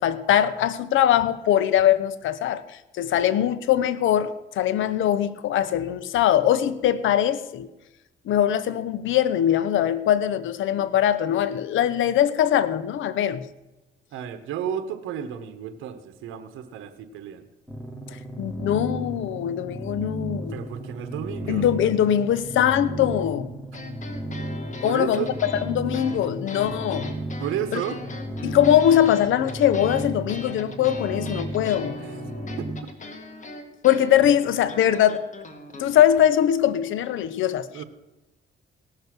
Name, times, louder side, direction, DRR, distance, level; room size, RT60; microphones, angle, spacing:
voice 1, 0.0-7.7 8.3-13.4 18.4-20.6 21.5-23.5 24.8-25.3 25.7-27.1 27.7-27.8 28.4-31.9 33.8-35.2 35.8-37.7, left 10 dB, 80° left, 0.8 m, -21 dB
voice 2, 14.1-17.5 20.4-21.6 24.8-25.3 27.4-28.0 32.0-32.3 32.6-32.9 37.7-37.8, right 9 dB, 85° right, 1.1 m, -32 dB
sound 1, 17.7-32.8, right 1 dB, 5° right, 2.7 m, -34 dB
sound 2, 23.7-35.8, left 3 dB, 40° left, 2.0 m, -40 dB
18.0 x 6.8 x 6.0 m
cardioid pair, 90°, 20 cm